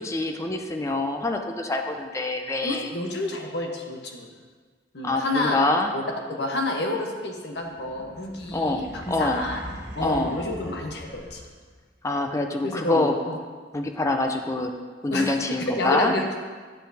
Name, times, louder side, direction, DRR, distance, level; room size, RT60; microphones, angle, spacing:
voice 1, 0.0-2.9 5.0-5.9 8.5-9.4 10.0-10.3 12.0-13.2 13.7-14.7 15.0-16.1, left 2 dB, 15° left, 5 dB, 0.5 m, -25 dB
voice 2, 2.6-4.3 4.9-5.6 5.9-6.0 6.3-9.6 9.9-11.4 12.6-13.4 15.1-16.2, left 2 dB, 65° left, 1 dB, 1.0 m, -29 dB
sound 1, 7.6-11.8, equal, 75° right, 1.4 m, -41 dB
9.9 x 6.2 x 2.7 m, 1.5 s
head